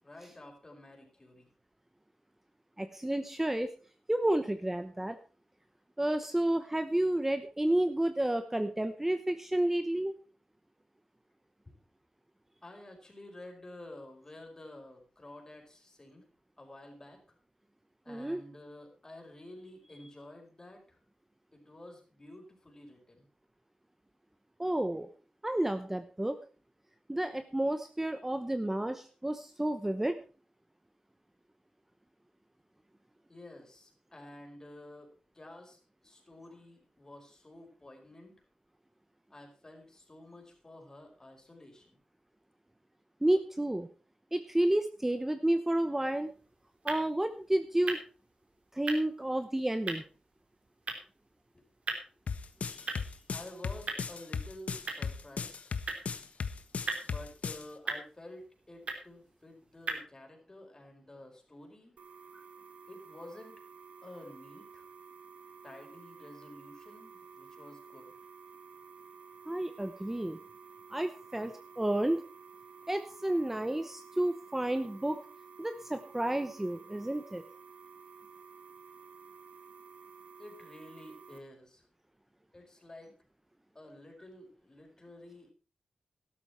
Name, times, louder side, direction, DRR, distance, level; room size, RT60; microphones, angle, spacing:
voice 1, 0.0-1.5 11.7-11.8 12.6-16.3 16.6-17.2 18.0-21.0 21.5-23.3 33.3-38.3 39.3-42.0 51.5-51.7 53.3-55.8 57.0-61.9 62.9-63.6 64.0-64.9 65.6-68.1 80.4-81.9 82.5-83.1 83.7-85.5, left 1 dB, 25° left, 2 dB, 4.8 m, -51 dB
voice 2, 2.8-3.7 4.1-5.2 6.0-10.1 18.1-18.4 24.6-25.1 25.4-26.4 27.1-30.2 43.2-43.9 44.3-46.3 46.8-48.0 48.7-50.0 52.7-53.1 62.3-62.4 69.5-70.4 70.9-72.2 72.9-75.2 75.6-77.4, right 1 dB, 15° right, 9 dB, 0.9 m, -31 dB
sound 1, 46.1-60.0, right 3 dB, 65° right, 3.3 m, -43 dB
sound 2, 52.3-57.6, left 5 dB, 75° left, 1.2 m, -36 dB
sound 3, 62.0-81.4, right 5 dB, 90° right, 1.6 m, -53 dB
13.0 x 12.5 x 4.4 m, 0.37 s
wide cardioid pair, 90°, 2 cm